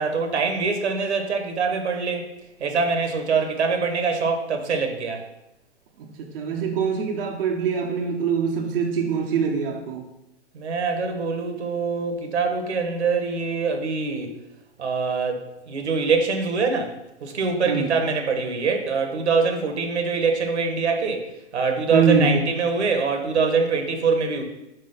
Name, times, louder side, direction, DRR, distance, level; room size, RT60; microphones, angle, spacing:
voice 1, 0.0-2.3 2.6-5.3 10.5-14.4 14.8-24.4, right 4 dB, 75° right, 5 dB, 1.5 m, -24 dB
voice 2, 6.0-10.1 17.7-18.0 21.9-22.3, right 6 dB, 50° right, 0 dB, 1.2 m, -24 dB
5.7 x 5.0 x 5.7 m, 0.91 s
hypercardioid pair, 130°, 34 cm